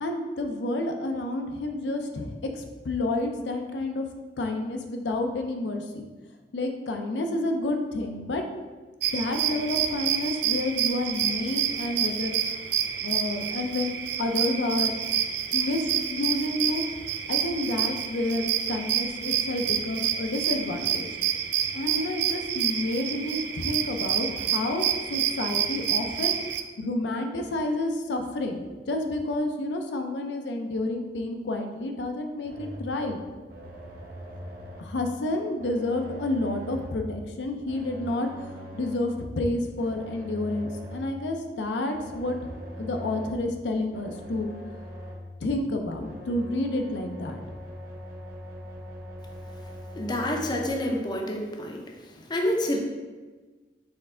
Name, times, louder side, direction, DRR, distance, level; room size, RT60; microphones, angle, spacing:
voice 1, 0.0-4.1 4.4-6.0 6.5-8.4 9.1-12.6 13.0-15.0 15.5-16.8 17.3-21.1 21.7-26.3 26.8-33.2 34.8-44.5 45.4-47.4, left 2 dB, 80° left, 4 dB, 0.5 m, -30 dB
sound 1, 9.0-26.6, right 9 dB, 70° right, 0.3 m, -28 dB
sound 2, 32.4-33.0 33.5-35.0 35.6-37.1 37.7-39.1 39.8-41.2 41.9-43.5 43.9-45.3 46.0-50.7, equal, 55° right, 0.8 m, -41 dB
voice 2, 50.0-52.8, left 1 dB, 25° left, 1 dB, 0.5 m, -28 dB
4.3 x 3.2 x 3.7 m, 1.3 s
head